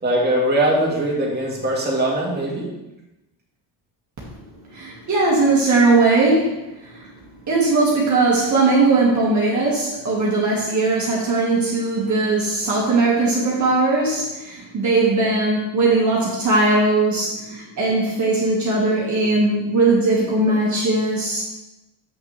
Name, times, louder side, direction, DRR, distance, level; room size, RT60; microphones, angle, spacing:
voice 1, 0.0-2.6, right 1 dB, 25° right, -4 dB, 2.2 m, -21 dB
voice 2, 4.7-7.1 7.5-21.4, right 3 dB, 45° right, -5 dB, 1.9 m, -19 dB
7.3 x 6.5 x 3.4 m, 0.97 s
cardioid pair, 120°, 40 cm